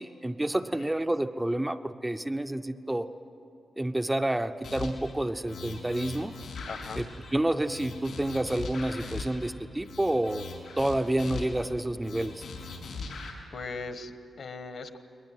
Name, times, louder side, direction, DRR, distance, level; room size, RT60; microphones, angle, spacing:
voice 1, 0.0-3.1 3.8-6.3 7.0-7.1 7.3-10.5 10.8-12.4, right 1 dB, 10° right, 8 dB, 0.4 m, -29 dB
sound 1, 4.6-5.1 5.5-7.3 7.7-9.5 9.8-11.7 12.0-13.3, left 4 dB, 75° left, 4.7 m, -40 dB
voice 2, 6.7-7.0 13.5-15.0, left 4 dB, 55° left, 9 dB, 1.3 m, -39 dB
21.5 x 20.0 x 9.1 m, 2.8 s
wide cardioid pair, 170°, 0 cm